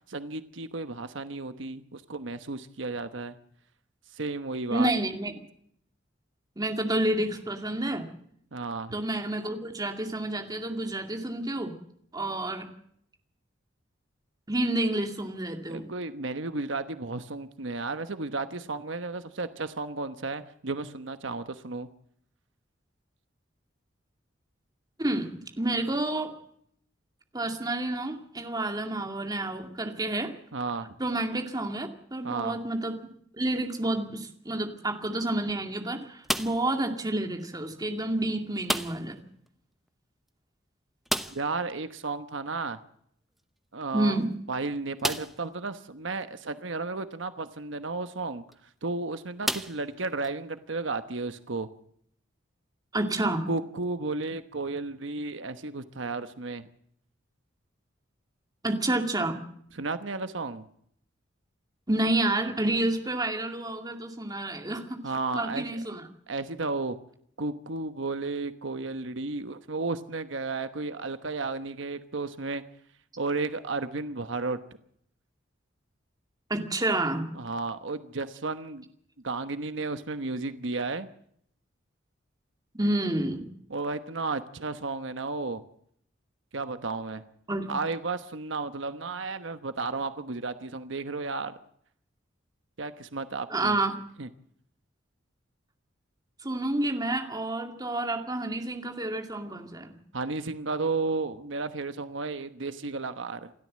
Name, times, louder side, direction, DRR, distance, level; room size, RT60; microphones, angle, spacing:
voice 1, 0.1-3.4 4.1-4.9 8.5-9.0 15.7-21.9 30.5-30.9 32.2-32.6 41.3-42.8 43.7-44.2 44.5-48.4 48.8-51.7 53.5-56.7 59.7-60.7 65.0-65.8 66.3-67.0 67.4-72.6 73.2-74.6 77.3-78.9 79.2-81.1 83.7-85.6 86.5-87.2 87.7-91.5 92.8-93.8 94.2-94.3 100.1-103.5, right 3 dB, 75° right, 10 dB, 1.1 m, -33 dB
voice 2, 4.7-5.3 6.6-8.1 8.9-11.8 12.1-12.7 14.5-15.9 25.0-25.3 25.6-26.3 27.3-30.3 31.0-33.0 33.4-39.2 43.9-44.3 52.9-53.4 58.6-59.4 61.9-65.0 65.3-66.0 76.5-77.3 82.8-83.5 87.5-87.7 93.5-93.9 96.4-99.9, right 1 dB, 20° right, 4 dB, 2.3 m, -29 dB
sound 1, 36.2-36.8 38.6-39.2 39.5-39.6 39.9-40.0 41.0-41.6 43.4-43.5 44.1-44.2 45.0-45.5 46.2-46.3 48.3-48.5 49.4-50.3, equal, ahead, 0.8 m, -32 dB
28.0 x 13.0 x 7.5 m, 0.68 s
head